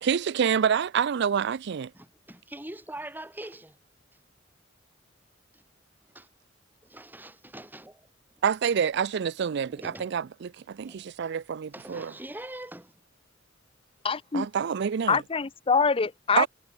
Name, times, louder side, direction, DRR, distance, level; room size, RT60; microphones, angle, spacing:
voice 1, 0.0-1.9 8.4-12.1 14.3-15.2 16.4-16.5, right 7 dB, 60° right, 0.4 m, -27 dB
voice 2, 1.9-3.8 5.5-5.6 6.1-6.3 6.8-8.0 9.7-10.1 10.9-11.0 11.7-12.9, right 1 dB, 10° right, 2.4 m, -43 dB
voice 3, 14.0-14.5 15.1-16.5, left 5 dB, 30° left, 0.6 m, -24 dB
head